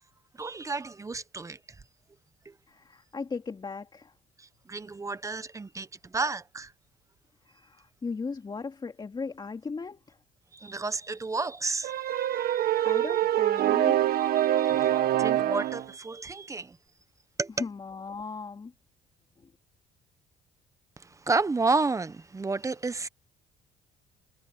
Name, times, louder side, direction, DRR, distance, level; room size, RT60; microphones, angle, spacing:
voice 1, 0.4-1.6 4.7-5.9 6.1-6.7 10.6-12.9 14.4-14.9 15.2-16.8 17.4-17.5 21.3-23.1, right 3 dB, 20° right, 0.9 m, -31 dB
voice 2, 2.7-4.1 7.5-10.2 12.8-14.1 17.6-18.7 19.4-19.5, left 4 dB, 25° left, 2.7 m, -37 dB
sound 1, 11.8-15.9, right 12 dB, 65° right, 1.3 m, -25 dB
cardioid pair, 110°, 17 cm